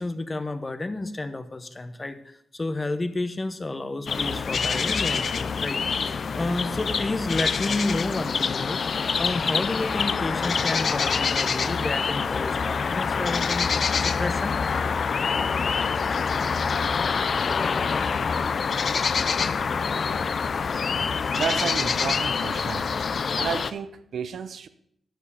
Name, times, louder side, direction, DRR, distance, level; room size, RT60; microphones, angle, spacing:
voice 1, 0.0-14.6, left 2 dB, 25° left, 10 dB, 0.9 m, -31 dB
sound 1, 4.1-23.7, left 5 dB, 55° left, 0.4 m, -26 dB
voice 2, 21.0-23.0 23.4-24.7, right 7 dB, 80° right, 11 dB, 0.7 m, -32 dB
11.5 x 5.4 x 6.8 m, 0.70 s
wide cardioid pair, 130°, 0 cm